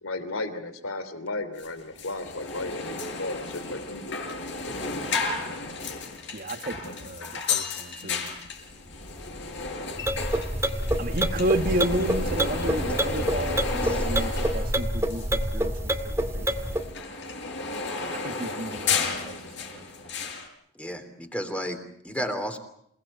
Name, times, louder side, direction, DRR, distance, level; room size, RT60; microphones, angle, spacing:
voice 1, 0.0-4.2, left 2 dB, 90° left, 11 dB, 3.0 m, -34 dB
sound 1, 1.6-1.7 2.0-15.4 15.7-20.5, left 4 dB, 60° left, 6.2 m, -33 dB
voice 2, 6.3-8.3 11.0-16.9 18.1-19.4 19.7-19.9, right 1 dB, 45° right, 8 dB, 1.7 m, -32 dB
sound 2, 10.0-16.9, right 1 dB, 15° right, 2.1 m, -27 dB
voice 3, 20.7-21.8 22.0-22.6, equal, 5° left, 6 dB, 3.3 m, -32 dB
28.5 x 18.5 x 8.5 m, 0.71 s
head